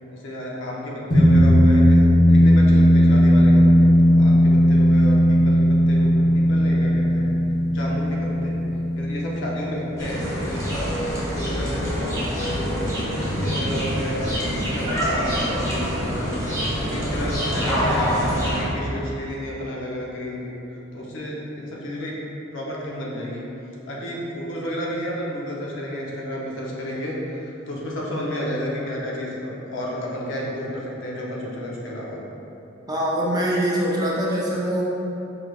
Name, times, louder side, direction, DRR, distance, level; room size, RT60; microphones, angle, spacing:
voice 1, 0.1-7.4 7.7-8.6 9.0-12.9 13.3-16.4 16.8-20.5 20.9-22.2 22.5-23.5 23.9-32.2, equal, 65° left, -4 dB, 0.7 m, -32 dB
sound 1, 1.1-11.8, equal, 40° left, 0.9 m, -17 dB
sound 2, 10.0-18.6, equal, 15° left, 1.1 m, -25 dB
voice 2, 32.9-34.8, equal, 20° right, -4 dB, 0.4 m, -23 dB
4.8 x 3.2 x 2.4 m, 3.0 s
head